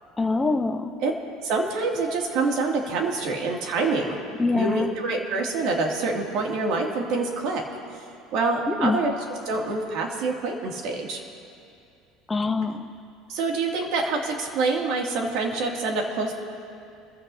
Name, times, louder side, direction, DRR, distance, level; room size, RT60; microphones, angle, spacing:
voice 1, 0.2-0.9 4.4-4.9 8.7-9.0 12.3-12.9, left 3 dB, 10° left, 4 dB, 0.9 m, -24 dB
voice 2, 1.4-4.2 4.5-7.6 8.3-9.1 9.5-11.2 13.3-16.3, right 3 dB, 65° right, 0 dB, 2.5 m, -26 dB
26.5 x 15.0 x 2.8 m, 2.5 s
cardioid pair, 140°, 0 cm